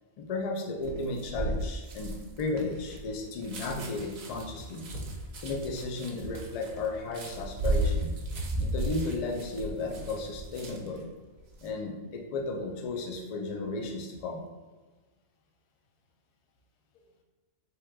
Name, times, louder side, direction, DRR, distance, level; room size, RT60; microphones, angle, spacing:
voice 1, 0.2-2.1 2.4-5.0 5.4-8.1 8.6-11.1 11.6-14.4, left 3 dB, 60° left, 2 dB, 0.4 m, -34 dB
sound 1, 0.8-11.0 11.4-11.7, right 1 dB, 70° right, 0.8 m, -34 dB
3.4 x 3.0 x 2.2 m, 1.3 s
omnidirectional pair, 1.1 m